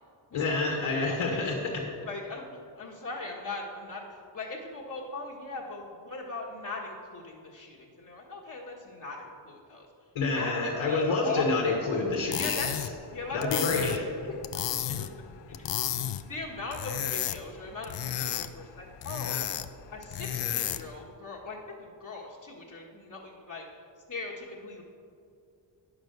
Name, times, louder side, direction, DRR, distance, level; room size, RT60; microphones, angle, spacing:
voice 1, 0.3-1.6 10.1-12.6 13.3-14.0, left 3 dB, 85° left, -1 dB, 1.5 m, -28 dB
voice 2, 1.1-1.4 2.0-2.5 2.7-9.9 10.3-10.5 10.8-11.4 12.3-12.7 13.1-14.0 14.3-15.2 15.6-15.7 16.2-19.5 19.9-23.6 24.1-24.8, left 3 dB, 40° left, -3 dB, 1.5 m, -40 dB
sound 1, 12.1-21.0, left 11 dB, 65° left, 0.6 m, -33 dB
9.1 x 6.2 x 6.6 m, 2.4 s
cardioid pair, 70°, 46 cm